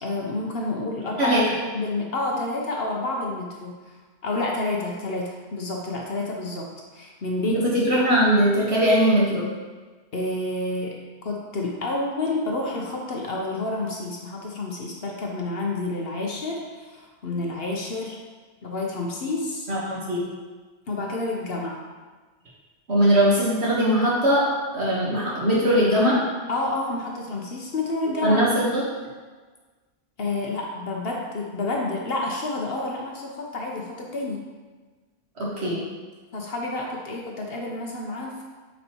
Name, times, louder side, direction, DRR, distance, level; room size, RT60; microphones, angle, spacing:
voice 1, 0.0-3.9 4.2-8.0 10.1-18.2 18.6-19.7 20.9-21.8 26.5-28.5 30.2-34.5 36.3-38.4, left 2 dB, 55° left, -1 dB, 1.0 m, -29 dB
voice 2, 7.7-9.5 19.7-20.2 22.9-24.4 24.7-26.2 28.2-28.7 35.4-35.8, equal, 60° right, -6 dB, 1.5 m, -20 dB
8.8 x 4.1 x 2.9 m, 1.4 s
omnidirectional pair, 1.3 m